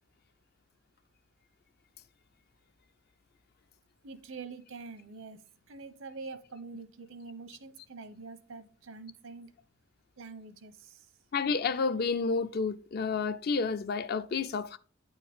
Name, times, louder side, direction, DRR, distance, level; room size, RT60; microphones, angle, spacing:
voice 1, 4.0-5.4 5.7-9.5 10.2-11.1, right 4 dB, 85° right, 0.9 m, -45 dB
voice 2, 11.3-14.8, left 4 dB, 50° left, 0.5 m, -30 dB
9.0 x 4.5 x 3.6 m
head